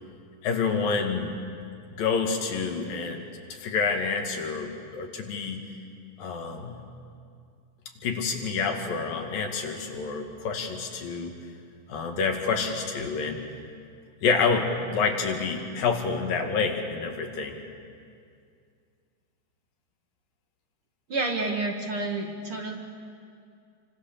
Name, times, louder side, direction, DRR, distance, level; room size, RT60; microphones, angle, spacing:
voice 1, 0.4-1.4 1.9-3.2 3.5-5.7 6.2-6.8 8.0-11.4 11.9-13.4 14.2-17.6, left 5 dB, 85° left, 3 dB, 3.9 m, -28 dB
voice 2, 21.1-22.8, right 2 dB, 45° right, 2 dB, 2.4 m, -29 dB
29.0 x 24.5 x 6.9 m, 2.3 s
omnidirectional pair, 3.9 m